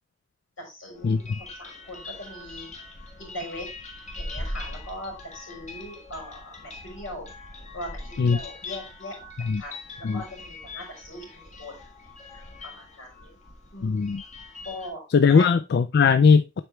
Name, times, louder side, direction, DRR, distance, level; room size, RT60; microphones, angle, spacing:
voice 1, 0.6-2.7 3.2-3.7 4.1-7.3 7.7-9.2 9.6-11.8 12.6-13.3 13.7-14.0 14.6-15.0 15.3-15.5, left 1 dB, 80° left, 4.2 m, -40 dB
sound 1, 0.9-14.9, left 2 dB, 40° left, 1.7 m, -41 dB
voice 2, 13.8-14.2 15.1-16.6, left 5 dB, 55° left, 0.4 m, -19 dB
8.1 x 4.5 x 3.1 m
head